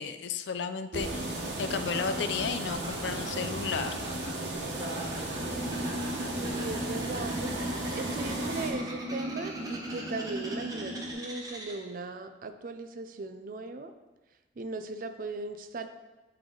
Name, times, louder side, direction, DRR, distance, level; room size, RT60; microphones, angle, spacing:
voice 1, 0.0-4.0, left 6 dB, 85° left, 11 dB, 0.4 m, -33 dB
sound 1, 0.9-8.7, right 1 dB, 90° right, 1.1 m, -35 dB
Laughter, 1.7-12.0, right 1 dB, 20° right, 1.0 m, -44 dB
sound 2, 5.4-11.1, equal, 15° left, 2.0 m, -37 dB
voice 2, 6.4-7.5 7.8-13.9 14.6-15.9, right 3 dB, 50° right, 8 dB, 0.4 m, -38 dB
8.4 x 3.3 x 3.8 m, 1.1 s
head